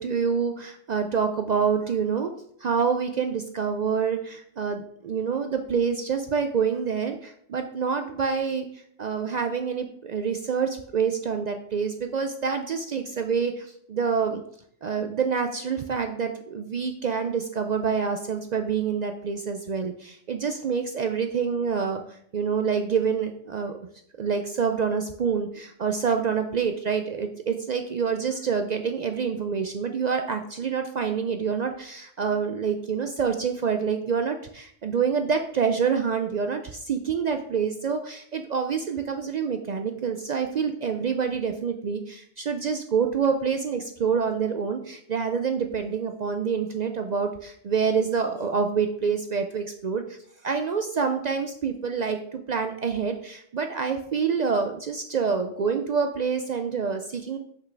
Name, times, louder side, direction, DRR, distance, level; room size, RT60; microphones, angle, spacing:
voice 1, 0.0-2.3 2.6-14.4 14.8-23.8 24.2-50.2 50.4-57.4, right 6 dB, 65° right, 5 dB, 0.4 m, -27 dB
5.9 x 5.5 x 3.4 m, 0.66 s
omnidirectional pair, 1.2 m